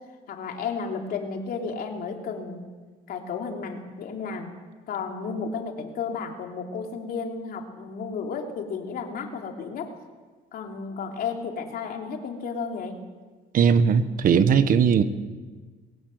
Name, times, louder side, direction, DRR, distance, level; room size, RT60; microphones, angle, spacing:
voice 1, 0.3-2.6 3.1-4.5 4.9-9.9 10.5-12.9, left 5 dB, 60° left, 2 dB, 3.3 m, -33 dB
voice 2, 13.5-15.0, right 7 dB, 55° right, 11 dB, 1.4 m, -19 dB
21.0 x 17.5 x 7.9 m, 1.4 s
cardioid pair, 110°, 17 cm